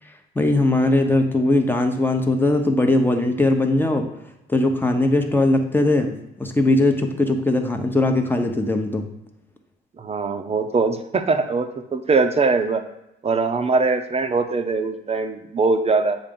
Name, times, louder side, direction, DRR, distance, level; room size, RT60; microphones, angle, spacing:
voice 1, 0.4-4.1 4.5-9.1, left 2 dB, 10° left, 5 dB, 0.8 m, -20 dB
voice 2, 10.0-12.8 13.2-16.2, right 4 dB, 30° right, 7 dB, 0.6 m, -21 dB
7.2 x 2.6 x 5.2 m, 0.90 s
cardioid pair, 90°, 20 cm